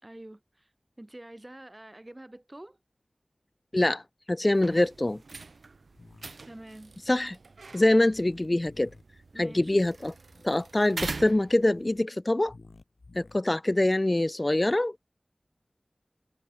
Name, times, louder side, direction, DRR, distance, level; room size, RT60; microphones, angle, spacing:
voice 1, 0.0-0.7 1.0-2.8 6.4-6.9 9.3-9.8, right 1 dB, 30° right, 5.3 m, -46 dB
voice 2, 3.7-4.0 4.3-5.2 7.1-7.4 7.7-8.9 9.4-10.1 10.4-12.5 13.2-15.0, left 1 dB, 35° left, 0.3 m, -24 dB
sound 1, 4.5-12.0, right 3 dB, 90° right, 1.3 m, -43 dB
sound 2, 5.9-6.3 8.1-9.0 10.3-10.7 12.4-13.4, left 3 dB, 70° left, 5.8 m, -53 dB
wide cardioid pair, 40°, 0 cm